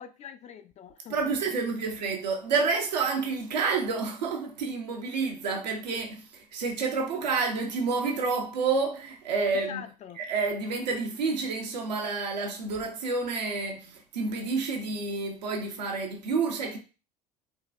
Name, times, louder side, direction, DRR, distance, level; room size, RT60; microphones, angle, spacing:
voice 1, 0.0-1.3 9.4-10.2, left 9 dB, 35° left, 0.4 m, -44 dB
voice 2, 1.1-9.8 10.2-16.8, right 4 dB, 85° right, 0.7 m, -29 dB
3.6 x 2.3 x 2.4 m
hypercardioid pair, 70°, 21 cm